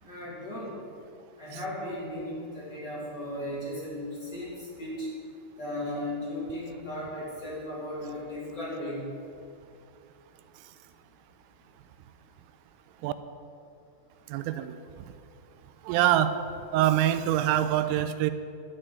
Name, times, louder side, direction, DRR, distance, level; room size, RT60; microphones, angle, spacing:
voice 1, 0.0-0.7 1.4-5.1 5.6-9.1, left 1 dB, 25° left, -8 dB, 3.8 m, -36 dB
voice 2, 14.3-14.7 15.8-16.3 16.7-18.3, right 12 dB, 90° right, 12 dB, 3.2 m, -24 dB
11.0 x 9.0 x 8.9 m, 2.5 s
omnidirectional pair, 5.7 m